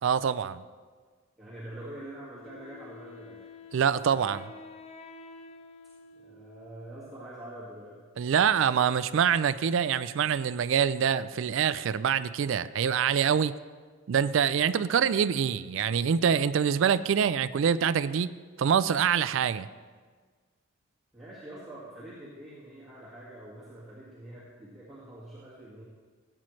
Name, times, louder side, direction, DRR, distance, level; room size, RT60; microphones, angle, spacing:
voice 1, 0.0-0.6 3.7-4.5 8.2-13.5 14.1-18.3 18.6-19.7, right 7 dB, 60° right, 15 dB, 0.3 m, -25 dB
voice 2, 1.4-3.5 6.1-8.0 21.1-25.8, right 1 dB, ahead, -11 dB, 1.9 m, -45 dB
Wind instrument woodwind instrument, 2.4-7.2, left 3 dB, 30° left, 0.5 m, -49 dB
15.5 x 8.9 x 3.2 m, 1.5 s
head